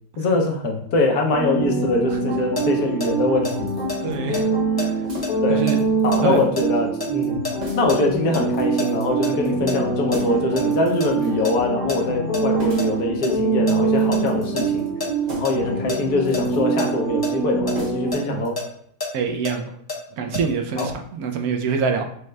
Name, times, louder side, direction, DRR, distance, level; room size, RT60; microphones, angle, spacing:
voice 1, 0.2-3.8 5.4-5.7 6.0-7.4 7.7-14.8 15.3-18.6 20.8-20.9, left 2 dB, 70° left, 1 dB, 1.3 m, -23 dB
sound 1, 1.3-18.1, right 4 dB, 45° left, 1.5 m, -24 dB
sound 2, 2.6-8.4 8.8-11.1 11.4-11.5 11.9-12.4 12.8-16.0 16.3-16.5 16.8-16.9 17.2-17.3 17.7-20.4 20.8-20.9, left 3 dB, 25° left, 0.5 m, -30 dB
sound 3, 3.5-3.9 5.0-5.6 6.0-6.5 6.7-6.9 7.6-8.0 8.5-9.1 10.1-10.5 10.9-11.5 12.6-13.0 13.6-14.3 15.2-15.7 16.2-16.6 17.7-18.3 18.6-18.7, equal, 35° right, 0.7 m, -37 dB
voice 2, 4.0-4.4 4.8-4.9 5.5-5.8 6.2-6.4 19.1-19.7 20.2-22.0, right 5 dB, 70° right, 5 dB, 1.0 m, -24 dB
6.3 x 2.2 x 3.2 m, 0.64 s
omnidirectional pair, 1.8 m